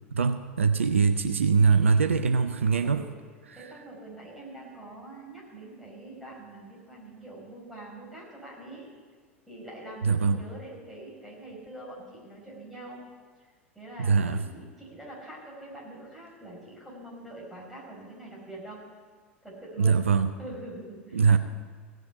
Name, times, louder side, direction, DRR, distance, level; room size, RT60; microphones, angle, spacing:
voice 1, 0.1-3.1 3.6-3.7 10.0-10.4 14.0-14.4 19.8-20.3 21.1-21.4, right 5 dB, 75° right, 10 dB, 0.5 m, -22 dB
voice 2, 2.8-3.1 3.5-8.9 9.5-13.0 13.8-18.8 19.4-20.0 20.4-21.4, right 1 dB, ahead, -5 dB, 5.0 m, -44 dB
16.0 x 6.4 x 8.6 m, 1.5 s
figure-of-eight pair, 85°, 7 cm